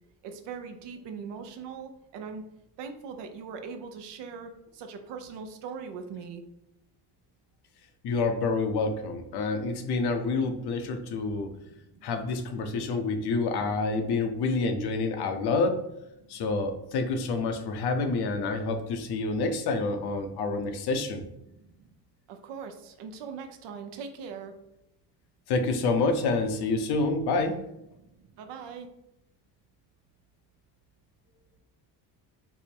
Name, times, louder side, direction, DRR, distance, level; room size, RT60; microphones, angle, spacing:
voice 1, 0.2-2.4 2.8-6.4 11.1-12.1 16.3-16.4 21.4-21.9 22.3-24.5 28.0-28.9, right 6 dB, 75° right, 6 dB, 0.7 m, -42 dB
voice 2, 8.0-11.5 12.0-15.8 16.3-21.2 25.5-27.6, left 3 dB, 65° left, 6 dB, 0.7 m, -28 dB
3.6 x 2.0 x 4.3 m, 0.87 s
cardioid pair, 95°, 43 cm